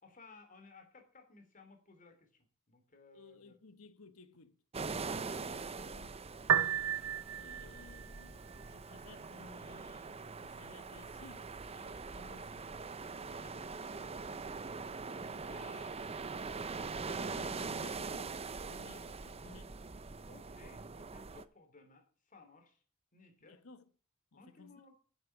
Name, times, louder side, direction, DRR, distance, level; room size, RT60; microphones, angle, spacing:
voice 1, 0.0-3.6 7.2-7.3 15.1-17.2 20.3-22.8 23.1-23.6 24.4-24.9, left 3 dB, 40° left, 2.9 m, -59 dB
voice 2, 3.1-6.2 7.3-14.6 14.9-15.8 17.0-19.8 23.4-23.8 24.3-24.8, left 3 dB, 75° left, 1.1 m, -58 dB
sound 1, 4.7-21.4, right 4 dB, 30° right, 0.6 m, -43 dB
Piano, 6.4-19.4, right 8 dB, 85° right, 0.7 m, -41 dB
10.0 x 8.0 x 5.9 m
head